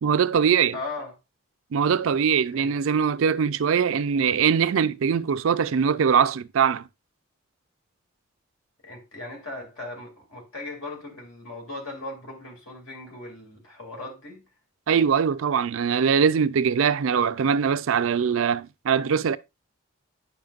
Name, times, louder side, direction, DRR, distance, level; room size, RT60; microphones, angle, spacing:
voice 1, 0.0-0.8 1.7-6.8 14.9-19.4, right 7 dB, 75° right, 0.4 m, -22 dB
voice 2, 0.7-1.1 2.6-2.7 8.8-14.4, left 2 dB, 80° left, 2.5 m, -38 dB
9.2 x 5.7 x 2.4 m
head